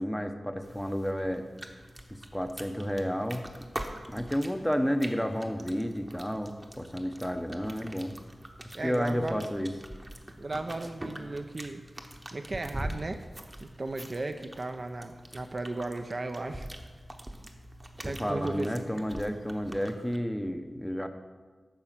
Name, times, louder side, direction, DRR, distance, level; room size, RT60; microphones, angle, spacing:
voice 1, 0.0-1.5 2.3-3.5 4.1-8.1 8.6-9.7 18.0-21.1, equal, 5° left, 7 dB, 0.7 m, -31 dB
sound 1, 0.6-20.2, right 1 dB, 20° right, 0.9 m, -44 dB
voice 2, 8.7-9.5 10.4-11.8 12.3-13.2 13.6-16.7 18.0-18.8, right 2 dB, 50° right, 7 dB, 0.6 m, -35 dB
9.0 x 5.5 x 7.3 m, 1.4 s
wide cardioid pair, 75°, 0 cm